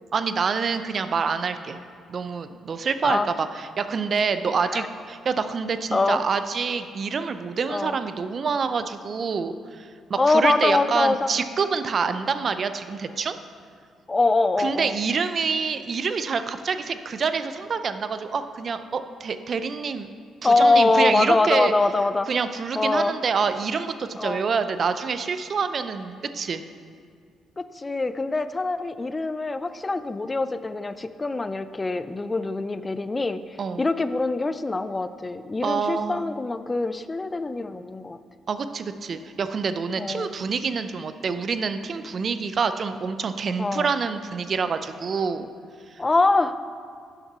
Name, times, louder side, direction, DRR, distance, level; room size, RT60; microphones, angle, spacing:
voice 1, 0.1-1.8 2.1-13.4 14.6-20.1 20.4-21.7 22.3-26.6 33.6-33.8 35.6-36.3 38.5-45.5, right 5 dB, 50° right, 10 dB, 0.4 m, -27 dB
voice 2, 10.2-11.3 14.1-15.0 20.4-22.3 22.8-23.1 24.2-24.4 27.6-33.4 33.8-38.2 40.0-40.3 43.6-43.9 46.0-46.6, left 3 dB, 25° left, 12 dB, 0.3 m, -23 dB
6.7 x 5.8 x 5.6 m, 2.2 s
cardioid pair, 90°, 0 cm